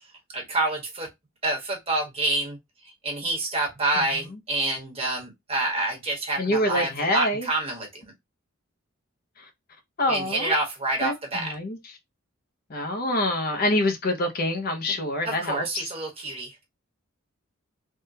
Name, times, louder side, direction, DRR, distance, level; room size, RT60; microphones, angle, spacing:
voice 1, 0.3-1.1 1.4-2.6 3.0-8.0 10.1-11.5 15.2-16.5, right 2 dB, 30° right, 1.2 m, -27 dB
voice 2, 6.4-7.5 9.4-9.5 10.0-10.5 11.0-11.9 12.7-15.9, left 1 dB, 45° left, 0.6 m, -26 dB
3.5 x 2.2 x 2.6 m
head